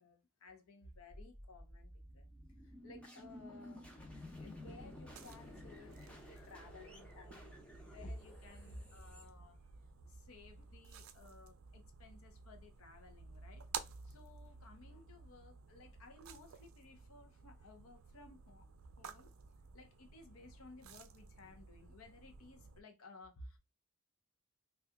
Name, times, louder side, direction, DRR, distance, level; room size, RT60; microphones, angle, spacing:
voice 1, 0.0-2.3 2.6-7.5 7.8-9.6 10.1-18.7 19.0-19.4 19.7-23.6, left 2 dB, 75° left, 0.6 m, -57 dB
sound 1, 0.9-10.0, left 1 dB, 5° left, 0.5 m, -54 dB
sound 2, 4.7-22.8, right 6 dB, 70° right, 0.4 m, -53 dB
2.8 x 2.3 x 3.4 m
head